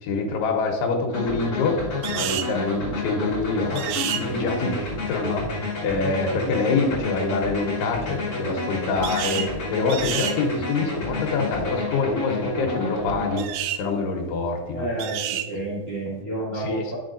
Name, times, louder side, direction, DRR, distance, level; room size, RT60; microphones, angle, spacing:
voice 1, 0.0-1.8 2.1-14.9 16.5-17.0, left 4 dB, 90° left, 0 dB, 3.0 m, -26 dB
sound 1, 1.1-13.4, left 2 dB, 35° left, 1.5 m, -30 dB
sound 2, 2.0-2.5 3.8-4.2 9.0-9.5 9.9-10.4 13.4-13.8 15.0-15.5, right 12 dB, 85° right, 2.0 m, -29 dB
voice 2, 14.7-16.9, right 1 dB, 60° right, -7 dB, 0.6 m, -30 dB
10.5 x 6.1 x 2.5 m, 1.2 s
omnidirectional pair, 4.6 m